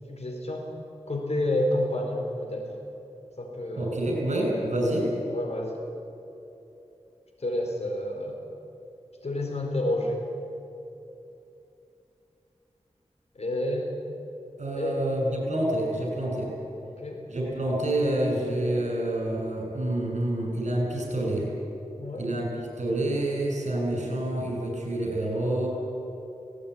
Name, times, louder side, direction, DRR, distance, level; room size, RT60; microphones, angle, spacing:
voice 1, 0.1-0.7 1.1-2.8 3.4-3.9 4.5-5.0 5.3-5.8 7.4-8.4 9.2-10.2 13.3-13.9 14.8-15.0 16.8-17.2 22.0-22.3, left 1 dB, 60° left, 2 dB, 4.4 m, -29 dB
voice 2, 3.8-5.1 14.6-16.5 17.3-21.5 22.1-22.5 22.8-25.7, right 1 dB, 75° right, -1 dB, 7.3 m, -27 dB
18.5 x 18.0 x 10.0 m, 2.9 s
wide cardioid pair, 65°, 12 cm